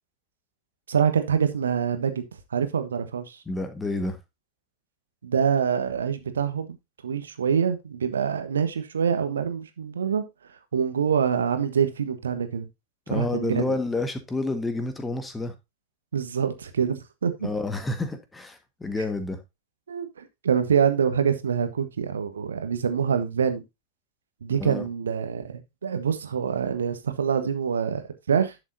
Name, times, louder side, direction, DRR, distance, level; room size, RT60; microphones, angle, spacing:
voice 1, 0.9-2.2 2.5-3.4 5.2-6.8 7.0-10.2 10.7-12.7 13.1-13.7 16.1-17.5 19.9-23.6 24.4-28.5, right 7 dB, 70° right, 1.4 m, -25 dB
voice 2, 3.5-4.2 13.1-15.5 17.4-19.4 24.6-24.9, left 2 dB, 10° left, 1.6 m, -29 dB
11.0 x 7.0 x 2.7 m
figure-of-eight pair, 90°, 0 cm